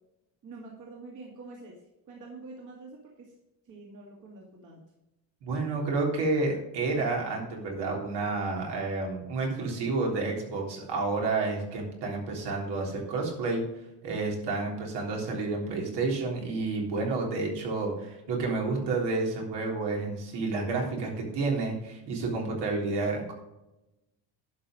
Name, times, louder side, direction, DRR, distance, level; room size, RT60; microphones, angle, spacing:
voice 1, 0.4-1.8 2.1-3.3 3.7-4.8, right 3 dB, 45° right, -2 dB, 2.4 m, -46 dB
voice 2, 5.4-13.6 14.0-23.3, right 3 dB, 75° right, 0 dB, 3.7 m, -30 dB
11.0 x 6.0 x 5.0 m, 0.92 s
cardioid pair, 150°, 42 cm